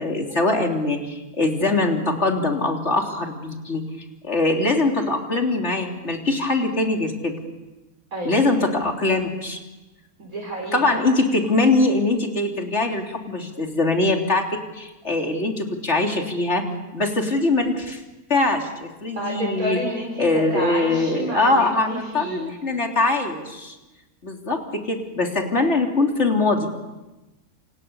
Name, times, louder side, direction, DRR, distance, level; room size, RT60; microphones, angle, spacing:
voice 1, 0.0-3.8 4.2-7.4 8.3-9.6 10.7-16.7 16.9-18.0 18.3-19.8 20.2-23.8 24.2-26.7, left 2 dB, 45° left, 2 dB, 3.6 m, -22 dB
voice 2, 8.1-8.5 10.2-11.0 19.1-22.5, right 1 dB, 65° right, -2 dB, 5.2 m, -30 dB
28.5 x 27.5 x 7.0 m, 1.1 s
omnidirectional pair, 1.6 m